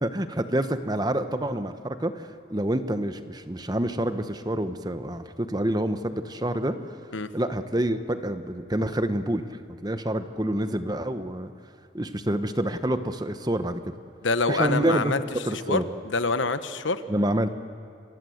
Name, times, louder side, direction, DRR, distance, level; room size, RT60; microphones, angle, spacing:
voice 1, 0.0-6.8 7.3-11.5 11.9-13.9 14.5-15.1 15.4-15.8 17.1-17.5, right 1 dB, 20° right, 9 dB, 1.0 m, -27 dB
voice 2, 14.2-15.2 15.7-17.0, left 3 dB, 75° left, 11 dB, 1.1 m, -26 dB
29.0 x 24.0 x 7.9 m, 2.3 s
head